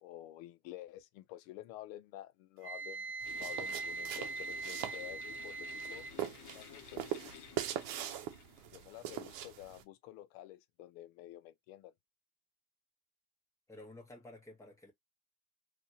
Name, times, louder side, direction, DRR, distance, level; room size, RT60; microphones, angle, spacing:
voice 1, 0.0-6.1 6.5-7.3 8.7-11.9, left 14 dB, 85° left, 0.6 m, -50 dB
Wind instrument woodwind instrument, 2.6-6.1, right 4 dB, 35° right, 0.5 m, -41 dB
sound 1, 3.2-8.8, left 10 dB, 50° left, 0.8 m, -54 dB
sound 2, 3.2-9.8, right 11 dB, 75° right, 0.7 m, -42 dB
voice 2, 13.7-14.9, left 1 dB, 10° left, 1.2 m, -52 dB
2.7 x 2.4 x 2.8 m
supercardioid pair, 120°, 39 cm